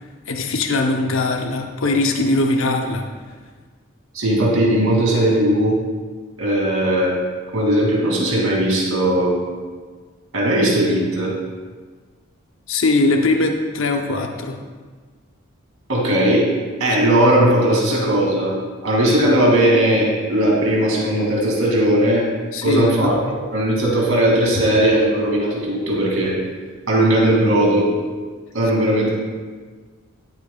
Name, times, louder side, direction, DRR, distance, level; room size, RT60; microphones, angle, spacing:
voice 1, 0.3-3.0 12.7-14.6 22.5-22.9 23.3-23.4, left 2 dB, 60° left, 3 dB, 0.8 m, -20 dB
voice 2, 4.1-5.8 6.4-7.2 7.5-9.3 10.3-11.3 15.9-16.5 16.8-18.5 18.8-22.2 22.6-26.3 26.9-27.9 28.5-29.1, right 1 dB, 70° right, -2 dB, 2.5 m, -18 dB
13.0 x 7.9 x 2.3 m, 1.5 s
head